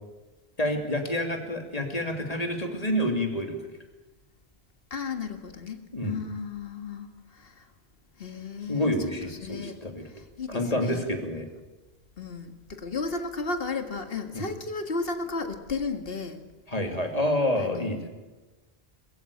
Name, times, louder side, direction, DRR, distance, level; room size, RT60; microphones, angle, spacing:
voice 1, 0.6-3.6 5.9-6.2 8.7-10.0 10.5-11.5 14.3-14.4 16.7-18.1, left 1 dB, 35° left, 3 dB, 3.0 m, -28 dB
voice 2, 4.9-7.7 8.2-8.9 9.2-9.8 10.1-11.0 12.2-16.4 17.6-18.1, left 4 dB, 60° left, 6 dB, 1.9 m, -34 dB
21.5 x 15.5 x 8.5 m, 1.2 s
omnidirectional pair, 1.1 m